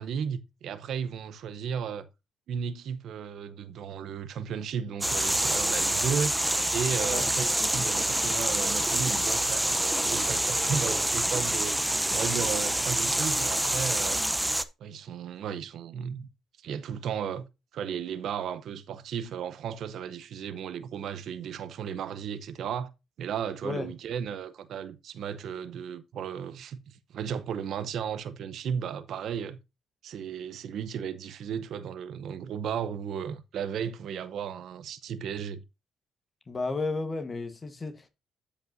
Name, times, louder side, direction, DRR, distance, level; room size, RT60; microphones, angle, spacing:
voice 1, 0.0-2.1 2.5-6.3 6.7-14.2 14.8-16.3 16.6-17.5 17.7-22.9 23.2-29.6 30.0-35.6, right 7 dB, 65° right, 0.7 m, -34 dB
sound 1, 5.0-14.6, right 1 dB, 5° right, 0.6 m, -27 dB
voice 2, 36.5-38.1, left 3 dB, 25° left, 1.1 m, -33 dB
13.0 x 5.1 x 2.6 m
cardioid pair, 115°, 0 cm